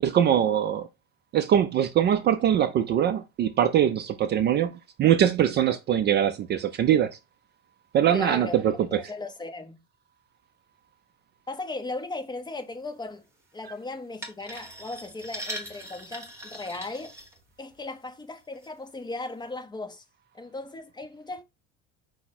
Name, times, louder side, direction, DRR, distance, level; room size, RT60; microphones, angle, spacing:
voice 1, 0.0-0.9 1.3-7.1 7.9-9.0, right 10 dB, 35° right, 0.4 m, -22 dB
voice 2, 8.1-8.5 8.9-9.8 11.5-13.2 13.5-17.1 17.6-20.0 20.3-21.4, left 2 dB, 15° left, 0.7 m, -37 dB
sound 1, 14.2-17.8 18.4-18.7 19.2-19.3, right 1 dB, 10° right, 1.1 m, -40 dB
5.5 x 2.1 x 4.1 m
cardioid pair, 125°, 29 cm